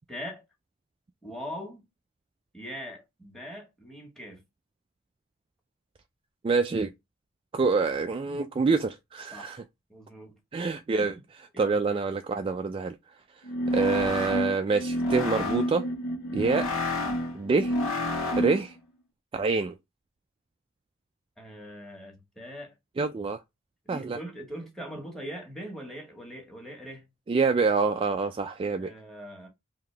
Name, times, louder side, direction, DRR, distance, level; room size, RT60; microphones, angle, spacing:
voice 1, 0.1-0.4 1.2-1.8 2.5-4.4 9.3-9.6 9.9-10.4 11.0-11.2 11.5-11.8 21.4-22.7 23.9-27.1 28.8-29.5, equal, ahead, 1.4 m, -41 dB
voice 2, 6.4-6.9 7.5-9.6 10.5-11.2 11.6-13.0 13.7-15.9 16.3-16.7 17.3-17.8 18.4-18.8 19.3-19.8 23.0-23.4 23.9-24.2 27.3-28.9, right 4 dB, 25° right, 0.3 m, -26 dB
sound 1, 13.4-18.7, left 1 dB, 80° left, 1.4 m, -29 dB
3.8 x 2.8 x 3.3 m
head